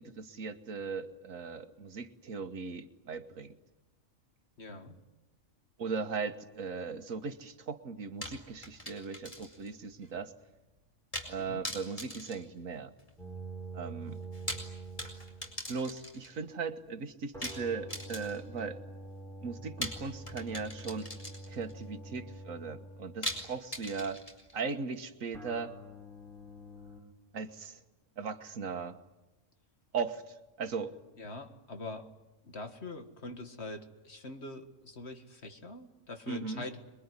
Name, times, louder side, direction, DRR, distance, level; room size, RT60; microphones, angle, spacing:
voice 1, 0.0-3.6 5.8-10.3 11.3-12.9 13.7-14.2 15.7-18.8 19.4-21.1 21.5-24.2 24.5-25.8 27.3-27.8 28.2-29.0 29.9-30.9 36.3-36.6, right 5 dB, 75° right, 9 dB, 1.7 m, -38 dB
voice 2, 4.6-5.0 11.4-11.6 31.2-32.1 32.4-36.9, left 2 dB, 55° left, 6 dB, 2.1 m, -44 dB
sound 1, 8.2-9.7 10.0-10.1 11.1-11.4 11.6-13.2 14.2-16.4 17.4-18.6 19.8-21.7 23.2-24.6, equal, 25° left, 4.9 m, -41 dB
sound 2, 13.2-15.7 17.3-23.6 25.3-27.0, right 2 dB, ahead, 3.5 m, -46 dB
26.5 x 22.5 x 9.7 m, 1.0 s
omnidirectional pair, 1.4 m